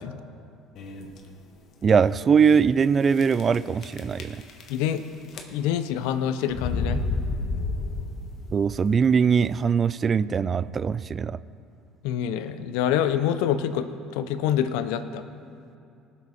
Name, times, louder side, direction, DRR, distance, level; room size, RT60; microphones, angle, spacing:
sound 1, 0.7-1.2 1.8-1.9 2.2-2.3 3.2-3.6 3.8-5.0 5.3-5.8 6.5-8.4, left 3 dB, 55° left, 1.3 m, -30 dB
voice 1, 1.8-4.4 8.5-11.4, right 6 dB, 35° right, 18 dB, 0.3 m, -21 dB
voice 2, 4.7-5.0 5.5-7.0 12.0-15.2, left 9 dB, 80° left, 11 dB, 0.6 m, -26 dB
18.5 x 7.2 x 4.2 m, 2.6 s
supercardioid pair, 90°, 0 cm